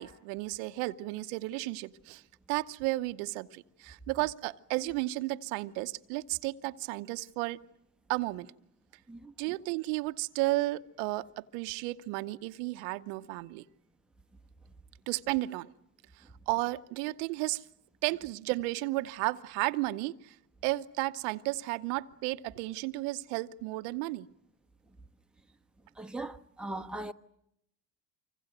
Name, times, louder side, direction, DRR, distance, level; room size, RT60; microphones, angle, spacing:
voice 1, 0.0-2.2 2.5-7.6 8.1-8.5 9.4-13.6 15.1-15.7 16.2-17.6 18.0-20.4 20.6-24.3, right 20 dB, 70° right, 0.9 m, -33 dB
voice 2, 26.0-27.1, right 2 dB, ahead, 1.1 m, -39 dB
25.5 x 25.0 x 7.9 m
hypercardioid pair, 80°, 48 cm